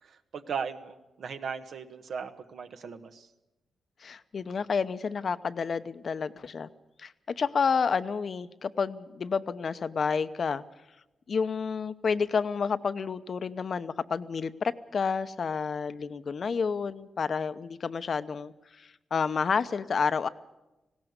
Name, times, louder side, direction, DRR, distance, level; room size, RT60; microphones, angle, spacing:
voice 1, 0.0-3.3, right 6 dB, 70° right, 8 dB, 1.5 m, -37 dB
voice 2, 4.0-6.7 7.0-10.6 11.3-20.3, left 5 dB, 55° left, 13 dB, 0.8 m, -30 dB
19.0 x 17.0 x 8.1 m, 1.0 s
cardioid pair, 90°, 0 cm